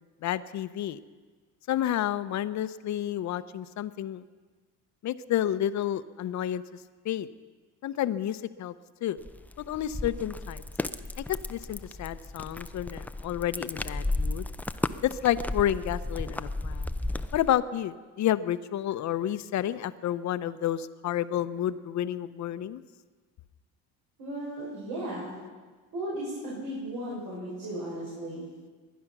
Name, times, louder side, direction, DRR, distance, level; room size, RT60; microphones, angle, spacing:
voice 1, 0.2-1.0 1.7-4.2 5.0-6.6 7.0-7.3 7.8-8.7 9.0-9.2 9.6-10.6 11.3-14.5 15.0-16.9 17.3-22.8, left 11 dB, 50° left, 14 dB, 0.7 m, -30 dB
sound 1, 9.2-17.5, left 2 dB, 5° left, 0.4 m, -34 dB
voice 2, 24.2-25.3 25.9-28.4, right 1 dB, 65° right, -8 dB, 6.3 m, -35 dB
21.0 x 10.5 x 6.0 m, 1.4 s
cardioid pair, 95°, 36 cm